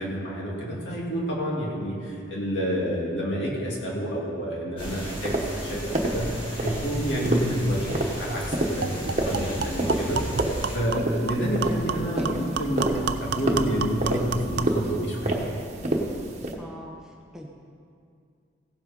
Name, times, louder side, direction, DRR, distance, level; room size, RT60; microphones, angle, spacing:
voice 1, 0.0-15.5, equal, 70° left, -4 dB, 2.7 m, -29 dB
sound 1, 4.8-10.8, equal, 30° left, 2.4 m, -36 dB
sound 2, 4.8-16.5, right 1 dB, 35° right, 1.2 m, -30 dB
sound 3, 7.9-8.0 8.3-8.4 8.8-14.8, right 5 dB, 60° right, 0.5 m, -31 dB
voice 2, 12.1-12.5 16.6-17.0 17.3-17.5, equal, 5° right, -1 dB, 0.9 m, -40 dB
16.0 x 7.7 x 5.3 m, 2.3 s
head